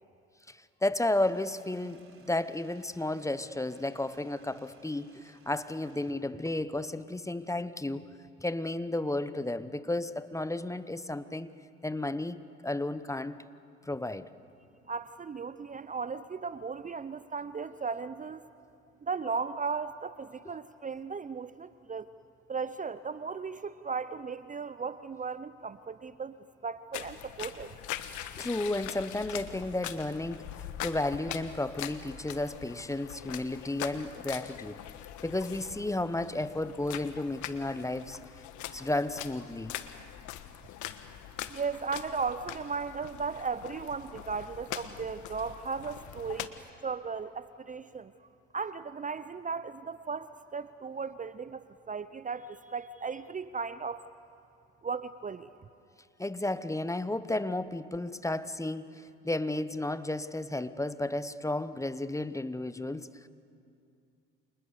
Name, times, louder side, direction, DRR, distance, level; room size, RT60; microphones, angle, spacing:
voice 1, 0.5-11.5 11.8-13.4 13.8-14.3 28.4-30.5 30.8-34.8 35.2-38.2 38.7-39.7 56.2-63.3, left 2 dB, 10° left, 14 dB, 1.0 m, -33 dB
sound 1, 1.1-6.1, right 5 dB, 40° right, 3.7 m, -62 dB
voice 2, 14.9-18.4 19.0-22.1 22.5-26.3 26.6-27.7 41.5-46.5 46.8-48.3 48.5-51.6 51.9-54.0 54.8-55.5, right 5 dB, 20° right, 14 dB, 0.7 m, -36 dB
sound 2, 26.9-46.5, left 12 dB, 60° left, 1.5 m, -42 dB
29.5 x 27.0 x 6.8 m, 2.5 s
hypercardioid pair, 65°, 34 cm